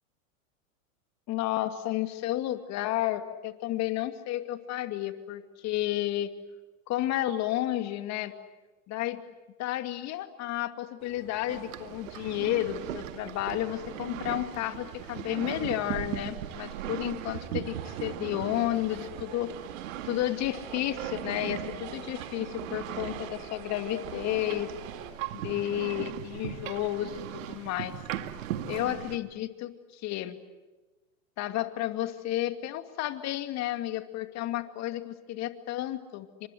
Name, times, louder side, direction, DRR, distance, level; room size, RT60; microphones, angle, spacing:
voice 1, 1.3-6.3 6.9-8.3 8.9-9.2 9.6-19.5 20.0-24.7 25.3-27.9 28.7-30.4 31.4-36.5, left 14 dB, 40° left, 8 dB, 2.5 m, -32 dB
sound 1, 11.0-25.1, right 9 dB, 50° right, 4.3 m, -47 dB
sound 2, 11.5-29.2, right 12 dB, 70° right, 2.1 m, -39 dB
29.5 x 25.5 x 7.9 m, 1.2 s
hypercardioid pair, 105°, 41 cm